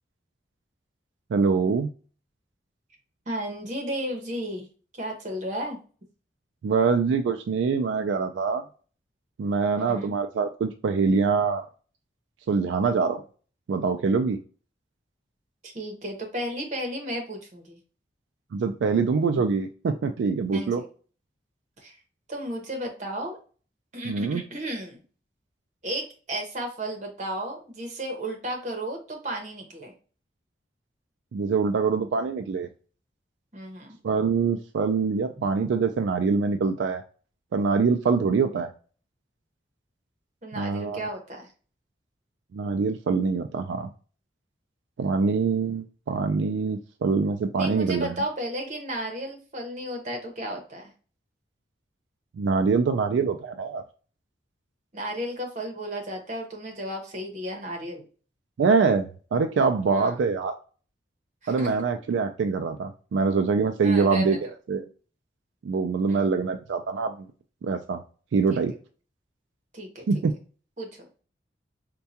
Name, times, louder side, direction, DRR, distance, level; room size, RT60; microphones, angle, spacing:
voice 1, 1.3-1.9 6.6-8.6 9.4-11.6 12.5-13.2 13.7-14.4 18.5-20.8 24.0-24.4 31.3-32.7 34.0-37.0 37.5-38.7 40.6-41.0 42.5-43.9 45.0-48.2 52.4-53.8 58.6-60.5 61.5-64.4 64.7-64.8 65.6-67.3 67.6-68.0 68.3-68.7 70.1-70.4, right 5 dB, 80° right, 7 dB, 0.3 m, -24 dB
voice 2, 3.3-4.7 4.9-5.8 9.8-10.1 15.6-17.8 20.5-20.9 21.8-21.9 22.3-23.4 23.9-25.0 25.8-29.9 33.5-34.0 40.4-41.5 47.6-50.9 54.9-58.0 59.9-60.2 61.4-61.7 63.8-64.4 66.1-66.3 68.5-68.6 69.7-70.0 70.8-70.9, right 1 dB, 40° right, 2 dB, 0.9 m, -33 dB
4.5 x 2.2 x 2.7 m, 0.38 s
head